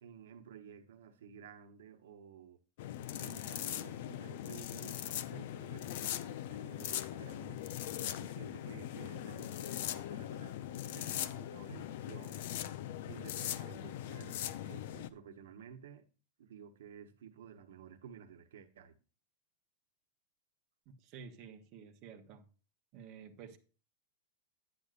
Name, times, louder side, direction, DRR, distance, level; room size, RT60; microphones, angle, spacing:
voice 1, 0.0-2.6 3.1-7.6 8.2-12.4 13.1-16.1 16.4-19.0, right 7 dB, 85° right, 1.1 m, -53 dB
sound 1, 2.8-15.1, left 12 dB, 50° left, 0.6 m, -40 dB
voice 2, 20.8-22.4 22.9-23.6, right 6 dB, 30° right, 1.2 m, -51 dB
10.5 x 9.6 x 2.5 m
supercardioid pair, 175°, 0 cm